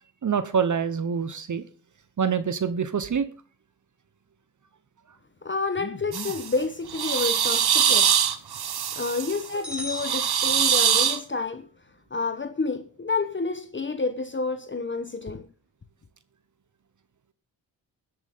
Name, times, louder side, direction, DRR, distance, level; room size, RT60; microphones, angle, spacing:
voice 1, 0.2-1.6 2.2-3.3, right 6 dB, 50° right, 1.1 m, -25 dB
voice 2, 5.4-8.3 9.0-11.7 12.1-15.5, left 4 dB, 30° left, 1.0 m, -29 dB
sound 1, 6.1-6.5 6.9-9.4 9.9-11.2, right 9 dB, 70° right, 1.3 m, -23 dB
sound 2, 9.6-11.2, left 1 dB, ahead, 5.1 m, -38 dB
22.5 x 8.0 x 3.7 m
cardioid pair, 70°, 40 cm